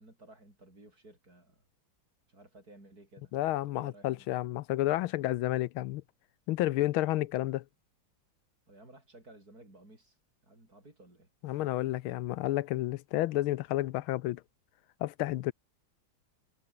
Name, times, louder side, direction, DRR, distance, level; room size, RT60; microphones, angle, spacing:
voice 1, 0.0-1.6 2.3-4.3 8.7-10.2 10.4-11.3, right 2 dB, 45° right, 8.6 m, -56 dB
voice 2, 3.3-6.0 6.5-7.6 11.4-14.4 15.0-15.5, left 16 dB, 85° left, 1.5 m, -31 dB
omnidirectional pair, 2.2 m